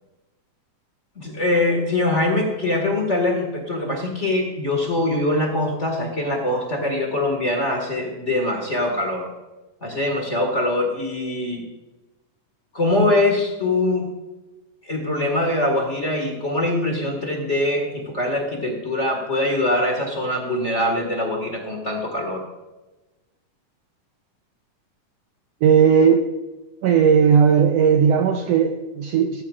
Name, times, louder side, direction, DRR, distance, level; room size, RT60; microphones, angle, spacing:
voice 1, 1.1-9.3 9.8-11.6 12.7-14.1 14.8-22.4, left 1 dB, 30° left, 1 dB, 1.5 m, -23 dB
voice 2, 25.6-26.3 26.8-29.4, right 7 dB, 90° right, 5 dB, 1.4 m, -16 dB
15.5 x 14.0 x 2.5 m, 1.1 s
omnidirectional pair, 3.7 m